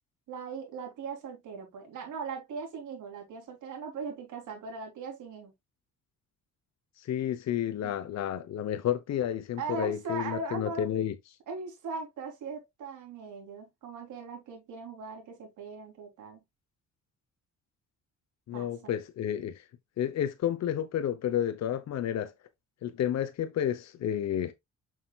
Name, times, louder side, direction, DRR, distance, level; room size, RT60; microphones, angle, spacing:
voice 1, 0.3-5.5 7.8-8.0 9.6-10.9 11.5-16.4 18.5-18.9, right 4 dB, 80° right, 3.5 m, -39 dB
voice 2, 7.0-11.1 18.5-19.6 20.0-22.3 22.8-24.5, left 10 dB, 60° left, 0.9 m, -31 dB
7.2 x 6.4 x 2.4 m
cardioid pair, 90°, 30 cm